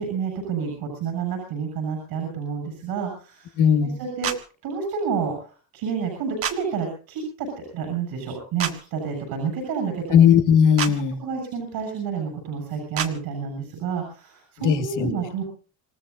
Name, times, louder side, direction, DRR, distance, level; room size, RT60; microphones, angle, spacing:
voice 1, 0.0-3.5 3.8-4.3 4.6-10.2 11.2-15.4, right 6 dB, 80° right, 3 dB, 7.3 m, -29 dB
voice 2, 3.6-4.0 10.1-11.2 14.6-15.1, left 8 dB, 60° left, 6 dB, 2.4 m, -18 dB
sound 1, 4.2-4.4 6.4-6.6 8.6-8.7 10.8-10.9 12.9-13.1, right 8 dB, 40° right, 1.6 m, -26 dB
27.0 x 17.5 x 2.7 m, 0.38 s
cardioid pair, 175°, 35 cm